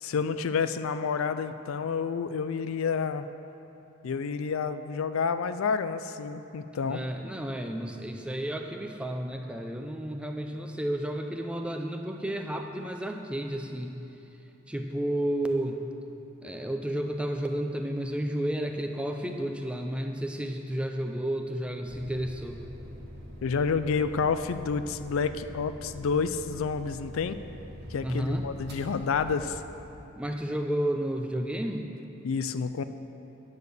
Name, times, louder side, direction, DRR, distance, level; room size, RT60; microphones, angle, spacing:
voice 1, 0.0-3.3 4.0-7.0 23.4-27.4 27.9-29.6 32.2-32.8, left 5 dB, 70° left, 11 dB, 0.4 m, -29 dB
voice 2, 6.9-14.0 14.7-15.8 16.4-22.7 28.0-28.5 30.2-31.9, right 1 dB, 5° right, 4 dB, 0.4 m, -32 dB
sound 1, 21.8-29.9, equal, 50° right, 1.4 m, -44 dB
9.8 x 6.7 x 6.6 m, 3.0 s
head